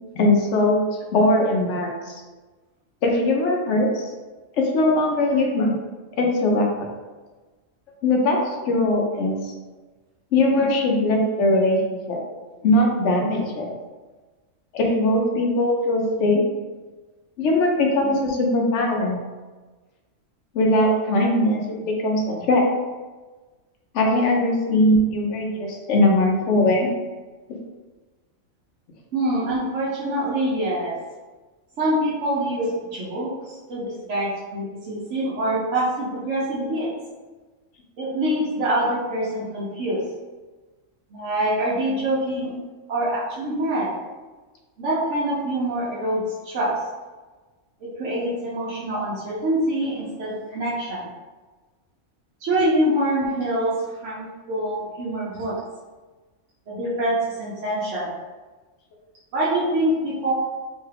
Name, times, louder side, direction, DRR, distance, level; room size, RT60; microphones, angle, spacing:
voice 1, 0.2-0.8 1.1-2.1 3.0-4.1 4.6-5.7 6.2-6.9 8.0-8.4 8.7-9.4 10.3-12.2 12.6-13.7 14.7-16.4 17.4-19.2 20.5-22.6 23.9-26.9, left 1 dB, 70° left, 0 dB, 0.9 m, -20 dB
voice 2, 29.1-30.9 31.8-36.9 38.0-40.0 41.1-42.5 42.9-43.9 44.8-46.8 47.8-51.1 52.4-53.7 54.0-55.6 56.7-58.1 59.3-60.3, right 1 dB, 70° right, -8 dB, 1.0 m, -25 dB
3.1 x 2.3 x 3.3 m, 1.3 s
omnidirectional pair, 1.4 m